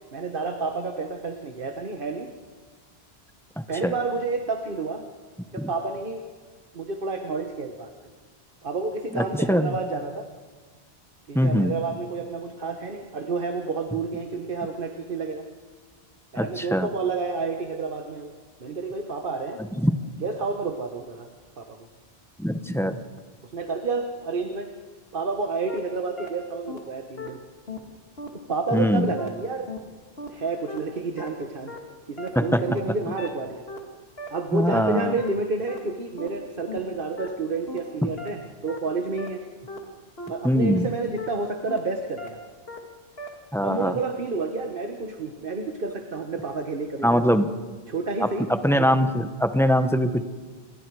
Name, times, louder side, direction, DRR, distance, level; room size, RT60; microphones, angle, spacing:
voice 1, 0.1-2.3 3.7-5.1 5.5-6.2 6.7-7.9 8.6-10.3 11.3-15.5 16.3-18.3 18.6-19.6 20.2-21.3 21.6-21.8 23.5-24.7 25.1-27.4 28.5-29.7 30.3-31.8 32.1-33.6 34.3-39.4 40.3-42.4 43.6-47.3 47.9-48.5, right 3 dB, 60° right, 5 dB, 1.5 m, -30 dB
voice 2, 9.1-9.7 11.3-11.7 16.4-16.9 19.8-20.0 22.4-23.0 28.7-29.1 32.3-32.6 34.5-35.2 38.0-38.1 40.4-40.9 43.5-44.0 47.0-47.5 48.2-50.2, equal, 5° left, 8 dB, 1.0 m, -22 dB
sound 1, 25.7-25.8 26.2-26.3 26.7-26.8 27.2-27.3 27.7-27.8 28.2-28.3 28.7-28.8 29.2-29.3 29.7-29.8 30.2-30.3 30.7-30.8 31.2-31.3 31.7-31.8 32.2-32.3 32.7-32.8 33.2-33.3 33.7-33.8 34.2-34.3 34.7-34.8 35.2-35.3 35.7-35.8 36.2-36.3 36.7-36.8 37.2-37.3 37.7-37.8 38.2-38.3 38.7-38.8 39.2-39.3 39.7-39.8 40.2-40.3 40.7-40.8 41.2-41.3 41.7-41.8 42.2-42.3 42.7-42.8 43.2-43.3, left 3 dB, 70° left, 2.6 m, -36 dB
28.5 x 22.5 x 4.8 m, 1.5 s
omnidirectional pair, 1.1 m